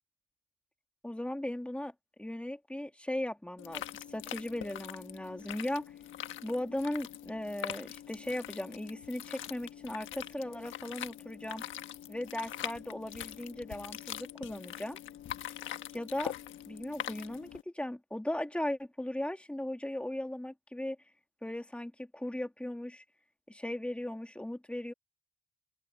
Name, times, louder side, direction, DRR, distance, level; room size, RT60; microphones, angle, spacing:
voice 1, 1.0-1.9 2.2-5.9 6.4-11.7 12.1-15.0 15.9-16.3 16.7-21.0 21.4-23.0 23.5-24.9, left 1 dB, 5° left, 2.4 m, -37 dB
sound 1, 3.6-17.6, left 11 dB, 80° left, 1.4 m, -43 dB
cardioid pair, 90°, 20 cm